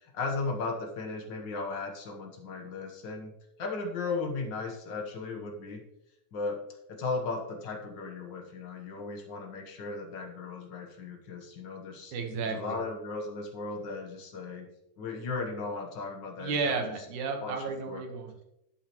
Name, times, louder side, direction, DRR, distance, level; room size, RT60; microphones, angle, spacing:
voice 1, 0.0-3.3 3.6-5.8 6.3-6.6 6.9-12.1 12.4-14.7 15.0-16.8 17.4-17.5 17.9-18.0, left 3 dB, 65° left, 2 dB, 1.1 m, -36 dB
voice 2, 12.1-12.8 16.4-18.4, right 4 dB, 70° right, 3 dB, 2.7 m, -33 dB
12.0 x 8.3 x 3.0 m, 0.84 s
omnidirectional pair, 3.8 m